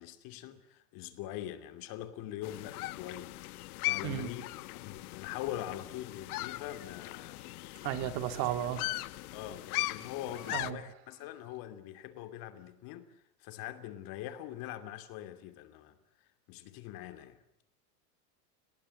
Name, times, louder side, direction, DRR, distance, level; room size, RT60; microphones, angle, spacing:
voice 1, 0.0-7.4 7.9-8.2 9.3-13.1 13.4-16.0 16.5-17.4, left 12 dB, 45° left, 2.6 m, -43 dB
sound 1, 2.4-10.7, left 19 dB, 65° left, 1.1 m, -39 dB
voice 2, 7.8-8.9 10.5-10.8, right 12 dB, 50° right, 2.3 m, -34 dB
29.5 x 19.0 x 7.8 m
supercardioid pair, 135°, 47 cm